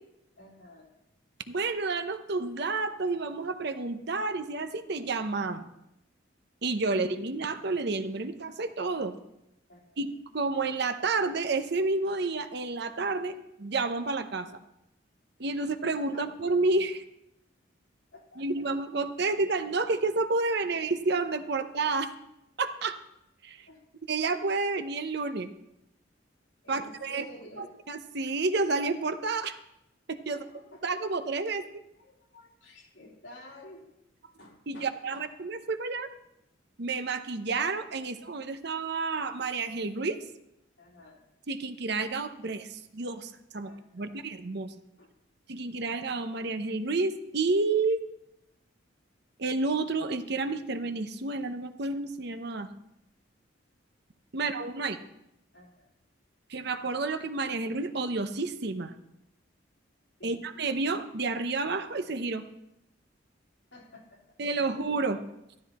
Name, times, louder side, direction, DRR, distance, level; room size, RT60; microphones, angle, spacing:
voice 1, 0.4-0.9 9.7-10.0 16.1-16.3 18.1-18.7 23.7-23.8 26.6-27.8 30.3-30.8 31.1-31.2 31.5-31.6 31.9-33.9 34.4-35.3 40.8-41.2 43.6-44.2 45.0-45.1 55.5-55.9 60.2-60.4 63.7-64.2, left 1 dB, 65° left, -3 dB, 3.7 m, -51 dB
voice 2, 1.5-5.7 6.6-9.1 10.0-10.1 10.3-14.5 15.4-17.0 18.4-22.1 22.6-23.0 23.4-23.7 24.1-25.5 26.7-27.2 27.6-29.6 30.1-30.4 30.8-31.6 34.7-36.1 36.8-40.2 41.5-44.7 45.5-48.0 49.4-52.7 54.3-55.0 56.5-58.9 60.2-62.5 64.4-65.2, right 3 dB, 55° right, 9 dB, 0.8 m, -30 dB
13.0 x 12.5 x 4.2 m, 0.85 s
head